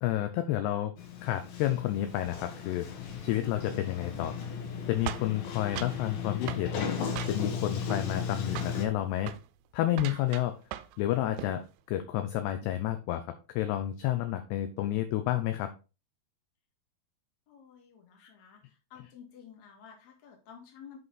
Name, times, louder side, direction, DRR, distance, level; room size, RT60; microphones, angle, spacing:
voice 1, 0.0-0.9 1.2-2.9 3.2-4.3 4.9-6.9 7.3-9.3 9.7-10.6 11.0-13.2 13.6-15.7, left 13 dB, 80° left, 8 dB, 2.6 m, -30 dB
Sliding door, 1.0-8.9, left 6 dB, 65° left, 3.0 m, -36 dB
sound 1, 5.1-6.0 6.5-6.7 7.2-7.6 7.9-8.3 8.6-8.8 9.2-9.4 9.9-11.0 11.3-11.6, right 14 dB, 85° right, 2.8 m, -40 dB
voice 2, 17.5-21.0, left 7 dB, 50° left, 1 dB, 2.7 m, -52 dB
7.6 x 5.6 x 4.0 m, 0.31 s
omnidirectional pair, 5.2 m